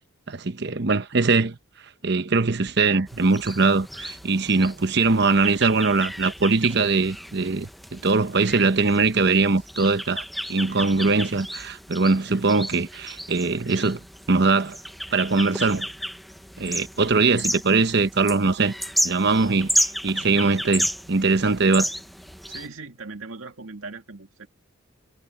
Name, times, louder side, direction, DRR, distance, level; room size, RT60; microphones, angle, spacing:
voice 1, 0.3-1.6 2.0-10.2 10.5-14.0 14.3-14.8 15.1-15.9 16.6-18.7 19.0-21.9, right 3 dB, 55° right, 0.9 m, -21 dB
sound 1, 3.1-22.7, equal, ahead, 0.7 m, -33 dB
voice 2, 22.5-24.5, right 3 dB, 80° right, 2.3 m, -39 dB
head